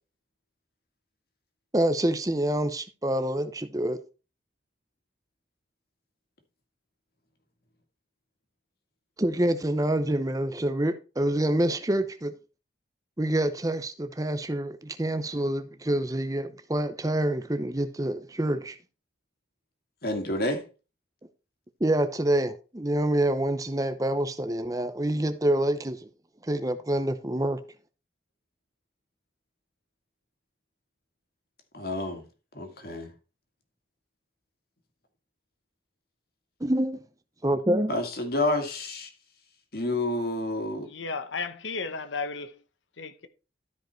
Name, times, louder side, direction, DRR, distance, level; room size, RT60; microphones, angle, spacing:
voice 1, 1.7-4.0 9.2-12.3 13.2-18.8 21.8-26.1 26.4-27.6 36.6-37.0 37.4-38.0, right 1 dB, 20° right, 0.7 m, -27 dB
voice 2, 20.0-20.6 31.7-32.2 32.5-33.1 37.9-39.1 39.7-40.9, left 2 dB, 55° left, 2.1 m, -29 dB
voice 3, 40.8-42.6 43.0-43.3, left 4 dB, 85° left, 0.9 m, -34 dB
13.0 x 5.2 x 4.4 m
head